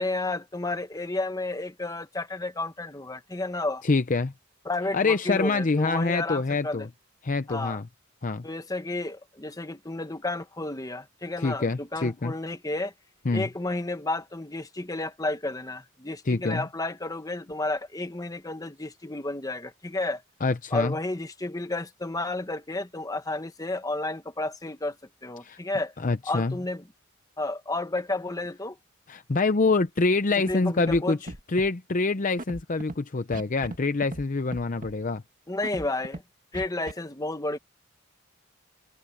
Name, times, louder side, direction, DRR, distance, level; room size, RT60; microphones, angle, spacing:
voice 1, 0.0-3.8 4.6-6.9 7.5-7.8 8.4-12.9 13.3-20.2 20.7-25.0 25.2-25.9 26.3-26.8 27.4-28.8 30.5-31.2 35.5-36.2 36.5-37.6, left 2 dB, 15° left, 1.1 m, -31 dB
voice 2, 3.8-4.3 4.9-6.9 7.2-7.8 8.2-8.5 11.4-12.3 13.3-13.5 16.3-16.7 20.4-20.9 25.4-25.6 26.0-26.6 29.1-31.2 31.5-35.2, left 3 dB, 40° left, 0.6 m, -25 dB
Scratching (performance technique), 30.5-30.6 30.8-31.0 31.3-31.7 32.4-32.9 33.3-33.8 34.0-34.2 34.5-34.9 35.6-36.2 36.5-36.9, right 1 dB, 40° right, 1.8 m, -37 dB
head